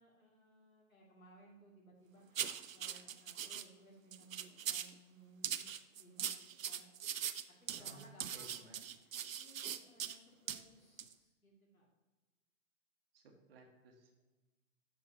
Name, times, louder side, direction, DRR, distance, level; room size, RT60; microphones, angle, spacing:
voice 1, 0.0-5.7 5.9-6.9 7.5-8.7 9.0-11.9, right 2 dB, 90° left, -2 dB, 2.2 m, -62 dB
sound 1, 2.3-3.6 4.1-4.9 5.4-10.2 10.5-10.6 11.0-11.1, right 9 dB, 75° right, 0.6 m, -41 dB
voice 2, 7.8-8.8 13.1-14.2, right 3 dB, 45° right, 3 dB, 1.5 m, -59 dB
8.9 x 6.9 x 2.8 m, 1.1 s
figure-of-eight pair, 125°, 40 cm